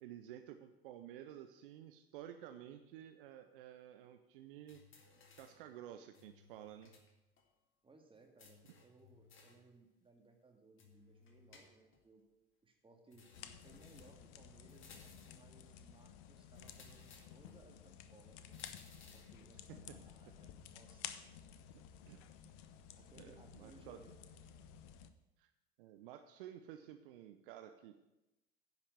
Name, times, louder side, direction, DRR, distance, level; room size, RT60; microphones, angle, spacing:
voice 1, 0.0-4.8 5.4-6.9 19.7-20.0 22.1-22.2 23.2-24.0 25.4-25.5 25.8-27.9, right 11 dB, 65° right, 8 dB, 0.7 m, -52 dB
sound 1, 4.7-5.7 6.1-7.1 7.4-7.5 8.4-9.7 10.8-12.0 13.1-14.2 14.7-15.5 16.5-17.6 18.5-19.4, left 5 dB, 45° left, 2.1 m, -62 dB
voice 2, 7.8-12.2 12.6-18.6 19.0-21.2 22.9-24.4, right 3 dB, 15° right, 3 dB, 2.2 m, -64 dB
sound 2, 13.3-25.1, left 9 dB, 60° left, 0.8 m, -54 dB
10.5 x 5.8 x 8.4 m, 0.98 s
figure-of-eight pair, 65°, 29 cm